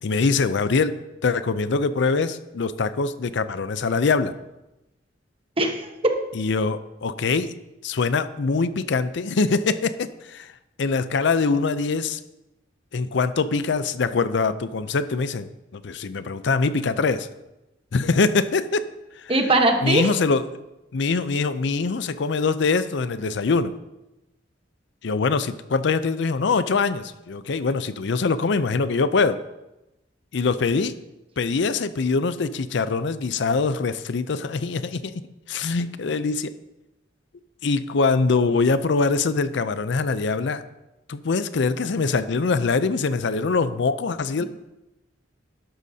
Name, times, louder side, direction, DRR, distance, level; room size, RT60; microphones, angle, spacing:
voice 1, 0.0-4.3 6.3-7.5 7.8-10.5 10.8-12.2 12.9-15.5 15.7-17.3 17.9-18.9 19.2-19.3 19.8-20.4 20.9-23.7 25.0-29.4 30.3-31.0 31.4-35.2 35.5-36.5 37.6-40.6 41.1-44.4, left 4 dB, 70° left, 13 dB, 0.5 m, -23 dB
voice 2, 5.6-6.1 19.3-20.1 44.4-44.5, right 2 dB, 30° right, 4 dB, 1.1 m, -20 dB
12.0 x 11.5 x 2.8 m, 0.96 s
head